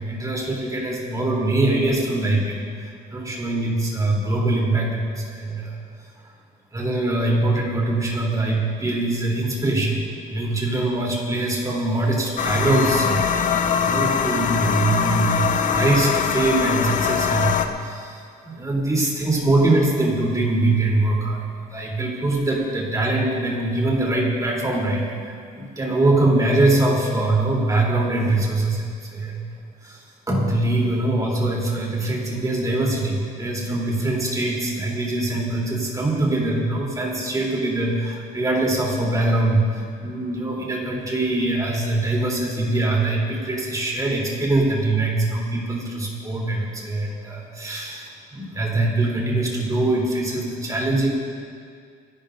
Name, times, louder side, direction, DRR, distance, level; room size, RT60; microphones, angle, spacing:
voice 1, 0.0-5.8 6.7-29.4 29.8-51.1, right 2 dB, 20° right, -3 dB, 3.6 m, -23 dB
sound 1, 12.4-17.7, left 7 dB, 50° left, 0.9 m, -22 dB
26.0 x 11.5 x 2.7 m, 2.2 s
cardioid pair, 110°, 17 cm